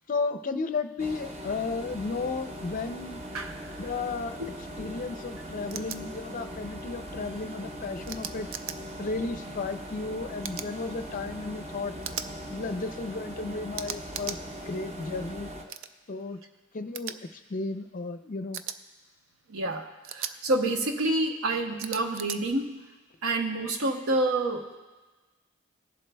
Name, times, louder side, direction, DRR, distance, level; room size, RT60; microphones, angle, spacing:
voice 1, 0.1-3.2 3.8-4.4 4.8-8.5 9.0-11.9 12.5-14.4 14.7-15.5 16.1-16.4 16.7-17.2 17.5-18.6, left 3 dB, 40° left, 9 dB, 0.5 m, -33 dB
sound 1, 1.0-15.6, equal, 30° right, 0.8 m, -40 dB
sound 2, 5.7-6.0 8.1-8.8 10.4-10.7 12.0-12.3 13.7-14.4 15.7-15.9 16.9-17.1 18.5-18.8 20.0-20.3 21.8-22.4, right 9 dB, 70° right, 0.4 m, -36 dB
voice 2, 19.5-22.8 23.2-24.8, right 2 dB, 90° right, 5 dB, 0.8 m, -28 dB
20.0 x 7.5 x 2.2 m, 1.3 s
head